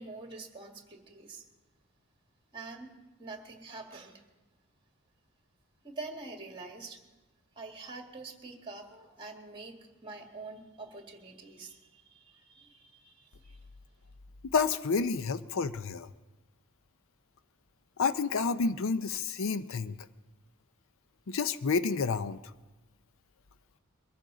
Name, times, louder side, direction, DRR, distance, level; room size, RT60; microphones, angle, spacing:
voice 1, 0.0-1.4 2.5-4.2 5.8-7.0 7.6-13.6, right 3 dB, 25° right, 3 dB, 1.9 m, -46 dB
voice 2, 14.4-16.1 18.0-20.0 21.3-22.4, left 5 dB, 65° left, 13 dB, 0.5 m, -29 dB
22.5 x 14.5 x 3.9 m, 1.1 s
head